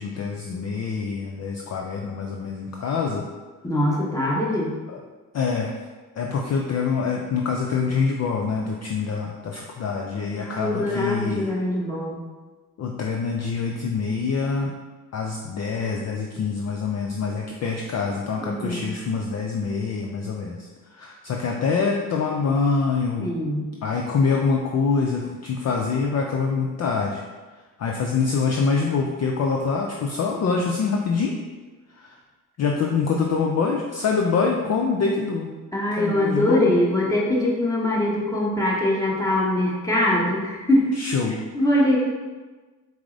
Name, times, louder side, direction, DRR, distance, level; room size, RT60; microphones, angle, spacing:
voice 1, 0.0-3.2 4.9-5.0 5.3-5.7 6.2-11.5 12.8-14.7 15.1-20.7 20.9-23.3 23.8-27.2 27.8-31.3 32.0-32.2 32.6-35.5 36.0-36.7 40.9-41.4, left 5 dB, 40° left, 0 dB, 0.5 m, -25 dB
voice 2, 3.6-4.7 10.4-12.2 18.4-18.8 23.2-23.7 35.7-40.9 41.3-42.0, left 1 dB, 10° left, -4 dB, 1.1 m, -23 dB
4.5 x 2.0 x 3.8 m, 1.3 s
supercardioid pair, 60°, 41 cm